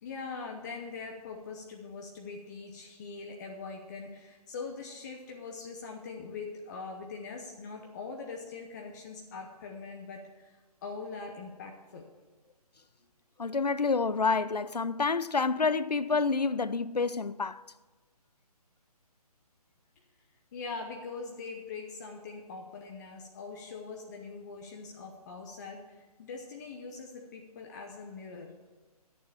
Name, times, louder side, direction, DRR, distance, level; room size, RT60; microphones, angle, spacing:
voice 1, 0.0-12.1 20.5-28.5, left 4 dB, 30° left, 0.9 m, -42 dB
voice 2, 13.4-17.6, left 4 dB, 90° left, 0.5 m, -28 dB
11.5 x 6.9 x 7.3 m
figure-of-eight pair, 140°, 20 cm